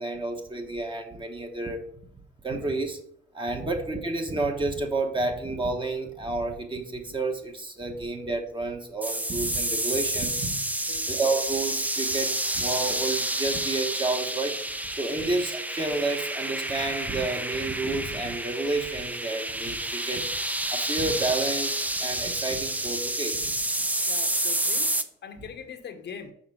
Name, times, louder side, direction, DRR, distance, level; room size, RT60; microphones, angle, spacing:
voice 1, 0.0-1.8 2.4-3.0 3.3-10.5 11.1-14.6 15.0-20.2 20.7-21.7 22.0-23.4, right 2 dB, 25° right, 4 dB, 1.3 m, -30 dB
sound 1, 9.0-25.0, right 1 dB, 10° right, 0.5 m, -29 dB
voice 2, 24.1-24.9 25.2-26.3, left 7 dB, 60° left, 7 dB, 0.9 m, -41 dB
6.4 x 4.6 x 4.7 m, 0.65 s
cardioid pair, 90°, 20 cm